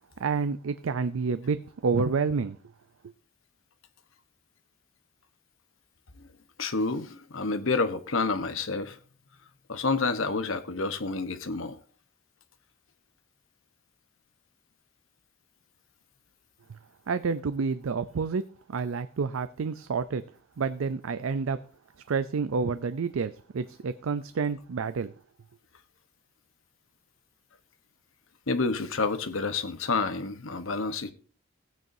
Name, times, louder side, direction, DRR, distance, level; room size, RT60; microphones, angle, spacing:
voice 1, 0.2-2.6 16.7-16.8 17.1-18.4 18.7-20.2 20.6-21.6 22.1-25.1, right 5 dB, 85° right, 0.5 m, -29 dB
voice 2, 6.6-9.0 9.7-11.8 28.5-31.1, left 3 dB, 75° left, 1.1 m, -29 dB
16.0 x 9.2 x 2.7 m
head